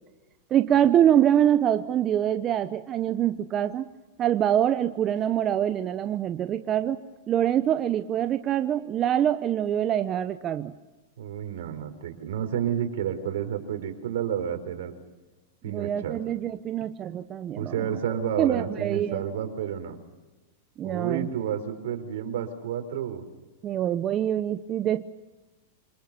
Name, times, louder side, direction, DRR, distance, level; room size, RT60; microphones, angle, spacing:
voice 1, 0.5-3.9 4.2-7.0 7.3-10.7 15.6-18.0 18.4-19.2 20.8-21.3 23.6-25.1, right 10 dB, 30° right, 10 dB, 0.9 m, -25 dB
voice 2, 11.2-14.9 15.6-16.2 17.6-20.0 20.8-23.2, right 9 dB, 75° right, 7 dB, 4.5 m, -30 dB
27.0 x 20.0 x 6.9 m, 1.2 s
hypercardioid pair, 130°, 0 cm